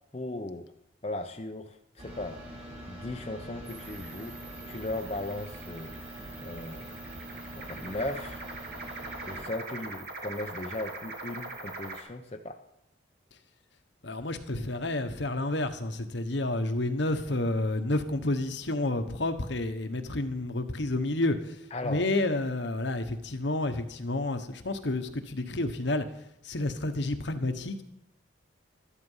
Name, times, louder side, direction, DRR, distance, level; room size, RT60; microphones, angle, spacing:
voice 1, 0.1-0.7 1.0-2.4 2.9-6.0 6.4-6.9 7.5-8.4 9.2-12.6 21.7-22.1, left 2 dB, 30° left, 3 dB, 0.7 m, -37 dB
sound 1, 2.0-9.4, equal, 35° right, 3.3 m, -44 dB
sound 2, 3.6-12.0, right 3 dB, 55° right, 2.1 m, -43 dB
voice 2, 14.0-26.1 26.4-27.8, left 2 dB, 65° left, 7 dB, 1.2 m, -30 dB
13.0 x 11.0 x 5.6 m, 0.82 s
head